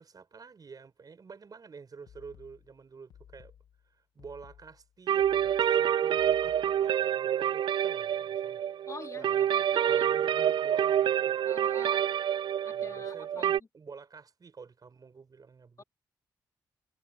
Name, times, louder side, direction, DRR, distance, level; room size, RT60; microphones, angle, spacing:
voice 1, 0.0-3.5 3.8-8.9 9.2-11.4 12.7-15.8, right 5 dB, 50° right, 5.2 m, -49 dB
sound 1, 2.1-7.0, left 9 dB, 75° left, 2.8 m, -57 dB
sound 2, 5.1-13.6, right 10 dB, 65° right, 0.4 m, -27 dB
voice 2, 8.9-10.2 11.4-12.0 12.6-13.7 15.8-15.9, left 4 dB, 35° left, 3.3 m, -46 dB
supercardioid pair, 55°, 9 cm